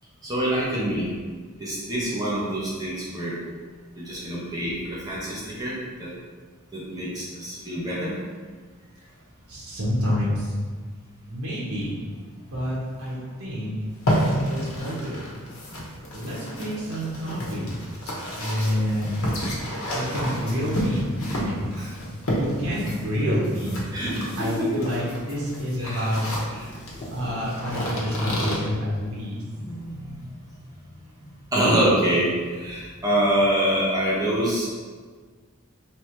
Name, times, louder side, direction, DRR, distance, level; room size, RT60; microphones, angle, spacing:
voice 1, 0.2-1.1 1.6-3.4 3.9-6.1 6.7-8.1 12.4-12.5 21.8-21.9 23.2-23.4 23.9-24.8 25.8-26.1 26.5-27.2 29.5-30.1 31.5-34.6, right 1 dB, 20° right, -8 dB, 1.0 m, -26 dB
voice 2, 9.5-10.5 11.3-11.9 12.5-13.8 14.5-15.2 16.1-17.7 18.4-19.1 19.9-21.0 21.4-21.7 22.1-23.8 24.4-26.2 27.1-29.4, equal, 90° right, -6 dB, 1.1 m, -28 dB
sound 1, 13.9-28.6, equal, 80° left, 1.1 m, -30 dB
3.4 x 3.0 x 4.4 m, 1.5 s
head